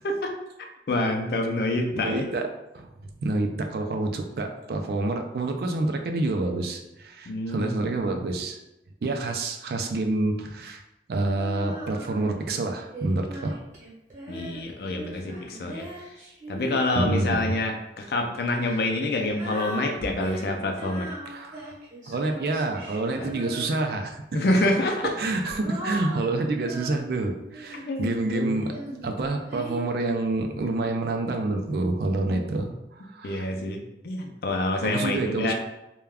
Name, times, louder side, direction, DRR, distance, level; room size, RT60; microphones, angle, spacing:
voice 1, 0.9-2.3 7.3-7.9 14.3-16.1 16.5-21.2 23.2-23.3 24.3-25.1 27.9-28.8 32.3-32.4 33.2-35.5, left 2 dB, 60° left, 3 dB, 0.4 m, -27 dB
voice 2, 1.9-2.5 2.7-8.6 9.0-10.8 11.1-13.6 17.0-17.5 21.3-21.8 22.1-24.4 25.0-28.7 29.0-33.5 34.8-35.5, right 2 dB, 60° right, 4 dB, 0.3 m, -28 dB
Female singing, 11.3-12.4 12.9-17.7 18.5-24.1 24.8-28.0 28.7-29.8, right 1 dB, 45° right, 0.8 m, -39 dB
2.3 x 2.2 x 3.4 m, 0.92 s
head